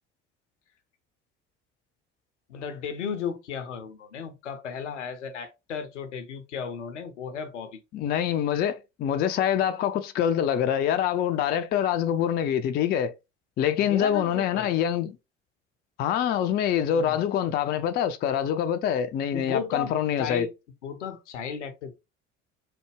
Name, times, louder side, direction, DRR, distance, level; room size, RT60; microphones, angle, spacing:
voice 1, 2.5-7.8 13.8-14.7 16.8-17.2 19.3-20.5 20.8-22.0, left 7 dB, 75° left, 0.7 m, -34 dB
voice 2, 7.9-13.1 13.6-15.2 16.0-20.5, left 9 dB, 30° left, 0.4 m, -25 dB
3.3 x 2.1 x 3.3 m
figure-of-eight pair, 60°, 36 cm